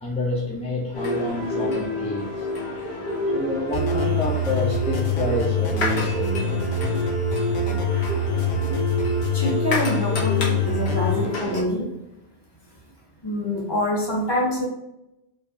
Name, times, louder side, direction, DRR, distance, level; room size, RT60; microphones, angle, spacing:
voice 1, 0.0-2.5 3.3-6.7, left 1 dB, 10° left, -4 dB, 0.5 m, -28 dB
sound 1, 0.9-11.6, left 1 dB, 75° left, 1.3 m, -28 dB
sound 2, 3.7-11.3, left 3 dB, 55° left, 0.8 m, -25 dB
voice 2, 9.3-11.9 13.2-14.7, left 1 dB, 25° left, -3 dB, 1.1 m, -25 dB
4.7 x 3.3 x 2.5 m, 0.90 s
omnidirectional pair, 1.1 m